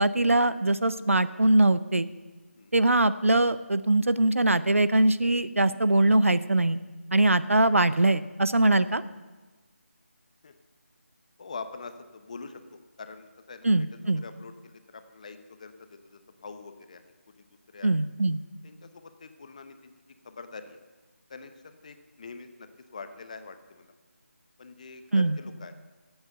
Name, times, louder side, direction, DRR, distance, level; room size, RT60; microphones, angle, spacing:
voice 1, 0.0-2.1 2.7-6.8 7.1-9.0 13.6-14.2 17.8-18.4 25.1-25.4, right 2 dB, 75° right, 15 dB, 0.6 m, -22 dB
voice 2, 11.4-17.5 17.7-17.9 18.6-19.9 20.2-20.8 21.3-23.9 24.6-25.7, left 4 dB, 30° left, 9 dB, 0.8 m, -44 dB
15.0 x 8.0 x 6.7 m, 1.2 s
figure-of-eight pair, 160°, 7 cm